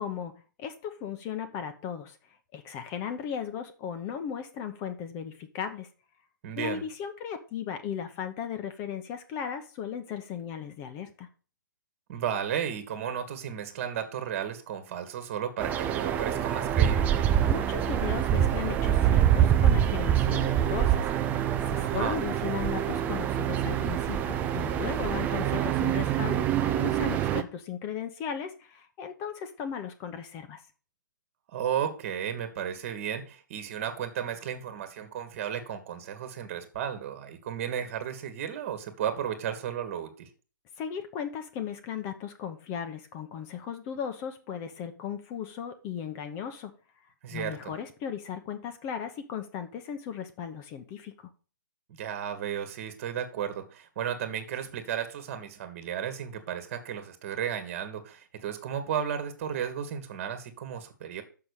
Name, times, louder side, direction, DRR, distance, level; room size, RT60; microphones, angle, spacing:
voice 1, 0.0-2.2 2.5-5.9 6.5-11.3 17.4-21.1 21.7-30.6 40.8-46.7 47.3-51.3, left 8 dB, 25° left, 8 dB, 1.0 m, -36 dB
voice 2, 6.4-6.8 12.1-17.2 21.8-22.2 31.5-40.3 47.2-47.7 52.0-61.2, right 9 dB, 40° right, 9 dB, 1.6 m, -34 dB
sound 1, 15.6-27.4, right 10 dB, 15° right, 0.5 m, -25 dB
6.8 x 5.8 x 6.4 m, 0.36 s
hypercardioid pair, 145°, 11 cm